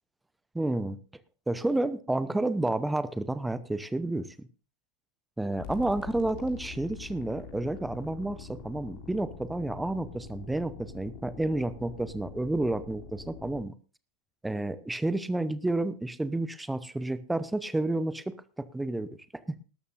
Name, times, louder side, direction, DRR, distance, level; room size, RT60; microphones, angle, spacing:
voice 1, 0.5-1.0 1.5-4.3 5.4-13.7 14.4-19.6, right 2 dB, 5° right, 15 dB, 0.8 m, -30 dB
sound 1, 5.6-13.6, left 6 dB, 45° left, 3.6 m, -45 dB
19.5 x 12.5 x 2.6 m, 0.36 s
figure-of-eight pair, 90°, 0 cm